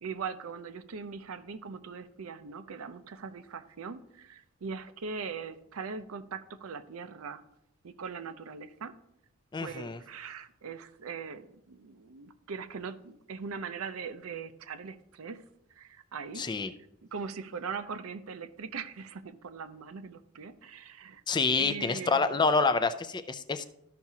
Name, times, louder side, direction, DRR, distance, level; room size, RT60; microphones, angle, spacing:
voice 1, 0.0-7.4 7.8-8.9 9.6-15.4 15.8-16.5 17.1-21.2 21.6-22.4, right 5 dB, 80° right, 10 dB, 0.6 m, -40 dB
voice 2, 9.5-10.0 16.4-16.7 21.3-23.6, left 4 dB, 20° left, 10 dB, 0.4 m, -27 dB
13.5 x 5.8 x 2.8 m, 0.81 s
head